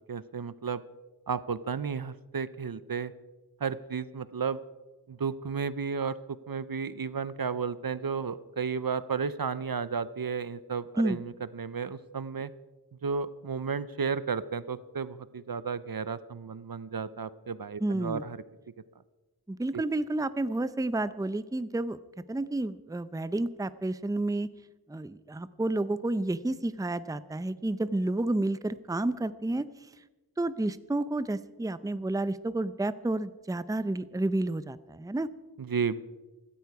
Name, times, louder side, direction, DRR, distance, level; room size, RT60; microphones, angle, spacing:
voice 1, 0.1-0.8 1.3-3.1 3.6-4.6 5.1-12.5 13.0-18.4 19.7-19.8 35.6-36.0, right 6 dB, 60° right, 16 dB, 0.7 m, -33 dB
voice 2, 17.8-18.2 19.5-22.0 22.3-24.5 24.9-29.9 30.4-35.3, right 2 dB, 10° right, 15 dB, 0.5 m, -30 dB
16.0 x 14.0 x 4.8 m, 1.1 s
wide cardioid pair, 50°, 40 cm